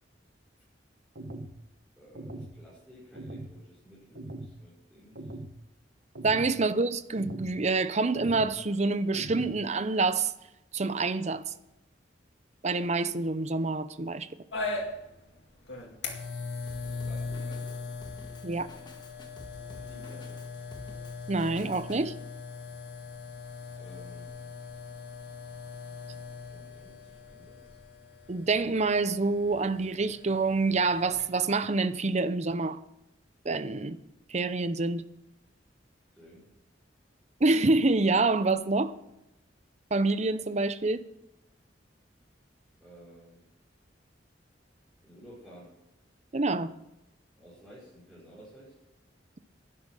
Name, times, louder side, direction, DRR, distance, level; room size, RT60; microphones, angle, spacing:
sound 1, 1.1-1.6 2.1-2.6 3.1-3.6 4.1-4.5 5.1-5.6 6.1-6.5 7.2-7.6 8.1-8.6 9.1-9.6, right 1 dB, 70° right, 1.3 m, -41 dB
voice 1, 2.0-5.4 16.8-17.8 19.7-20.5 23.8-24.4 26.1-26.2 26.5-27.8 36.1-36.6 42.8-43.5 45.0-45.8 47.3-48.8, equal, 5° right, 5.5 m, -53 dB
voice 2, 6.2-10.3 10.7-11.4 12.6-14.3 18.4-18.7 21.3-22.1 28.3-32.8 33.4-34.0 34.3-35.0 37.4-38.9 39.9-41.0 46.3-46.7, right 3 dB, 40° right, 0.7 m, -27 dB
sound 2, 14.5-31.2, left 3 dB, 70° left, 2.3 m, -40 dB
Drum kit, 16.7-22.0, left 1 dB, 25° left, 1.7 m, -50 dB
11.5 x 10.0 x 6.3 m
head